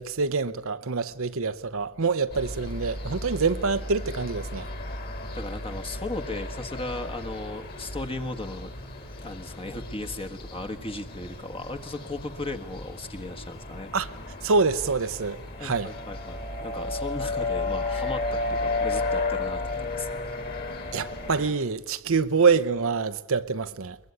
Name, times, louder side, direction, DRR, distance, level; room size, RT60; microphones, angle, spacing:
voice 1, 0.0-4.7 13.9-14.1 14.4-15.9 20.9-24.0, right 4 dB, 65° right, 0.8 m, -26 dB
sound 1, 2.3-21.5, left 2 dB, 45° left, 3.9 m, -34 dB
voice 2, 5.3-8.7 9.2-13.9 15.6-20.2, left 2 dB, 25° left, 1.5 m, -36 dB
22.5 x 22.0 x 9.6 m
head